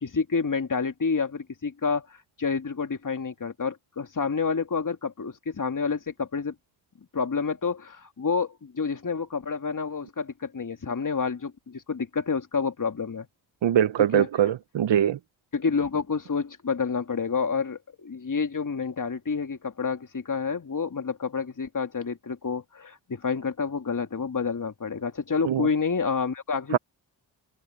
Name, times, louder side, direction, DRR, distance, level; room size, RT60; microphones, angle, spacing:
voice 1, 0.0-2.1 2.4-6.5 7.1-13.3 14.1-14.3 15.5-26.8, left 5 dB, 40° left, 2.6 m, -29 dB
voice 2, 13.6-15.2 25.4-25.7 26.7-26.8, right 10 dB, 65° right, 1.0 m, -22 dB
supercardioid pair, 40°, 48 cm